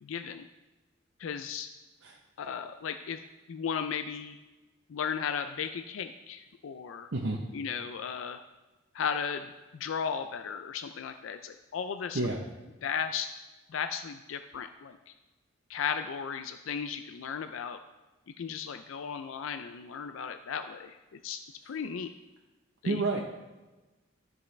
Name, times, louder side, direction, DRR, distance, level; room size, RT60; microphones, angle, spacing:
voice 1, 0.0-0.5 1.2-1.7 2.4-3.2 3.5-4.4 4.9-7.1 7.5-8.4 8.9-12.2 12.8-13.3 13.7-15.1 15.7-17.8 18.4-21.4 21.7-22.1 22.8-23.2, left 7 dB, 90° left, 8 dB, 0.4 m, -35 dB
voice 2, 7.1-7.4 12.1-12.4 22.8-23.2, right 2 dB, 70° right, -1 dB, 0.8 m, -29 dB
13.0 x 5.5 x 3.2 m, 1.2 s
head